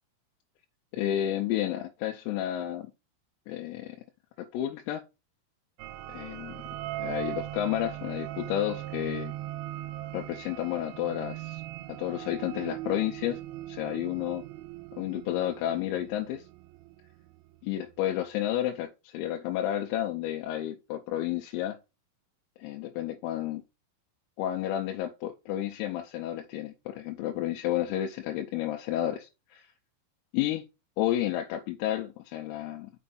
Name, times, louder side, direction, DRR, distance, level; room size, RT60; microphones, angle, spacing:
voice 1, 0.9-2.9 3.5-4.0 4.5-5.0 6.1-6.5 7.0-9.3 10.1-11.6 12.0-13.4 13.7-14.4 15.0-16.4 17.6-21.8 22.6-23.6 24.4-29.7 30.3-30.6 31.0-32.9, left 12 dB, 90° left, 3.4 m, -31 dB
sound 1, 5.8-17.1, right 15 dB, 85° right, 2.6 m, -39 dB
6.2 x 5.6 x 4.1 m
omnidirectional pair, 5.9 m